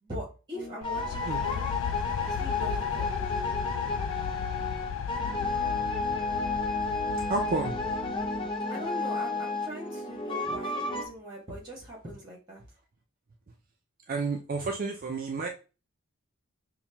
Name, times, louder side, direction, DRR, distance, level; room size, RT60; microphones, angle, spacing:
voice 1, 0.0-1.7 2.2-3.1 8.7-12.6, equal, 20° right, -3 dB, 1.5 m, -41 dB
sound 1, 0.5-11.1, left 3 dB, 25° left, 0.6 m, -32 dB
sound 2, 0.8-8.6, left 8 dB, 65° left, 0.3 m, -34 dB
voice 2, 7.3-7.9 14.1-15.5, right 3 dB, 40° right, 2 dB, 0.4 m, -31 dB
5.6 x 2.2 x 2.9 m, 0.33 s
head